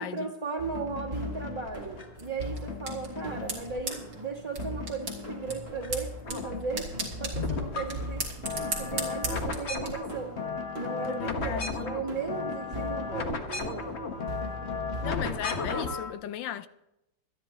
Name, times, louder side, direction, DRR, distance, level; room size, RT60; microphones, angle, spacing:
voice 1, 0.0-6.9 7.2-8.2 8.8-10.3 10.8-13.9, right 4 dB, 15° right, 2.1 m, -36 dB
sound 1, 0.6-15.6, right 1 dB, 35° right, 1.8 m, -41 dB
sound 2, 0.7-2.2 2.7-4.3 4.6-5.9 6.2-16.1, left 4 dB, 40° left, 1.4 m, -36 dB
sound 3, 2.2-9.9, right 3 dB, 80° right, 3.5 m, -38 dB
voice 2, 11.1-12.0 15.0-16.7, left 11 dB, 75° left, 1.3 m, -36 dB
25.5 x 10.5 x 2.9 m
omnidirectional pair, 2.1 m